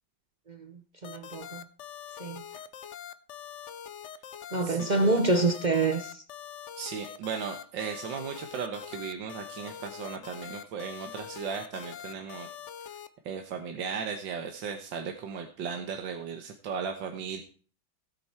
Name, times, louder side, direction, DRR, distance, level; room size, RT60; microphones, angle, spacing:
voice 1, 0.5-1.6 2.2-2.4 4.5-6.2, right 2 dB, 50° right, 0.5 m, -27 dB
sound 1, 1.0-13.1, left 9 dB, 65° left, 0.7 m, -43 dB
voice 2, 4.6-5.2 6.8-12.5 13.3-17.4, right 6 dB, 75° right, 1.8 m, -36 dB
16.0 x 8.6 x 4.4 m
omnidirectional pair, 2.1 m